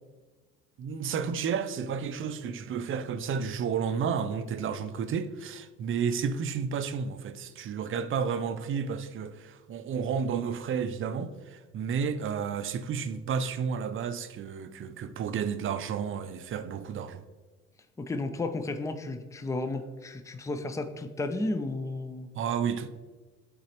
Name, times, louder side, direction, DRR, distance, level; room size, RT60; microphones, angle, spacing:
voice 1, 0.8-17.2 22.3-22.9, right 6 dB, 45° right, 0.5 m, -31 dB
voice 2, 18.0-22.3, left 2 dB, 10° left, 0.5 m, -33 dB
8.3 x 3.9 x 2.9 m
supercardioid pair, 80°, 29 cm